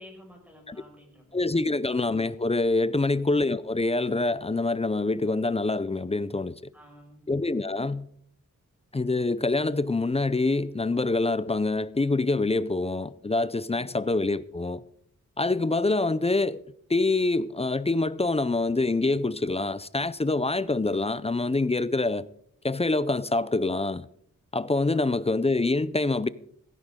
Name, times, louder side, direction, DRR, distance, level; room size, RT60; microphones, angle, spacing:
voice 1, 0.0-1.8 6.7-7.3 13.7-14.0 24.9-25.2, equal, 5° right, 5.5 m, -51 dB
voice 2, 1.3-6.6 7.3-8.1 8.9-14.8 15.4-16.6 16.9-22.3 22.6-24.1 24.5-26.3, left 2 dB, 20° left, 0.5 m, -25 dB
16.5 x 14.5 x 3.7 m
wide cardioid pair, 105°, 33 cm